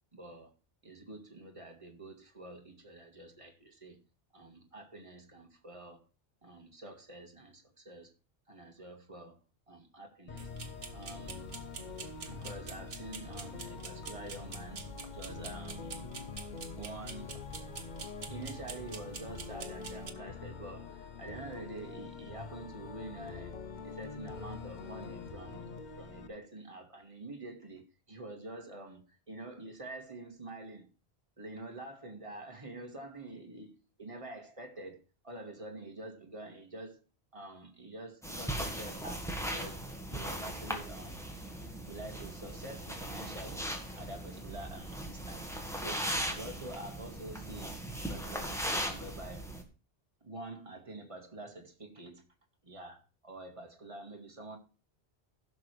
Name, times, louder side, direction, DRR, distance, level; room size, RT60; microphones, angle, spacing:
voice 1, 0.1-0.5 0.8-4.0 4.3-6.0 6.4-8.1 8.5-9.4 9.7-10.5 10.9-11.5 12.2-15.9 16.7-17.4 18.3-25.7 26.0-30.9 31.4-37.0 37.3-41.3 41.9-45.5 45.8-47.8 48.1-49.5 50.2-52.2 52.6-54.6, right 2 dB, 30° right, 1.8 m, -47 dB
sound 1, 10.3-26.3, left 5 dB, 50° left, 0.8 m, -45 dB
sound 2, 10.4-20.1, right 4 dB, 70° right, 1.3 m, -47 dB
sound 3, 38.2-49.6, equal, 5° left, 1.6 m, -38 dB
16.0 x 6.3 x 3.3 m
omnidirectional pair, 1.1 m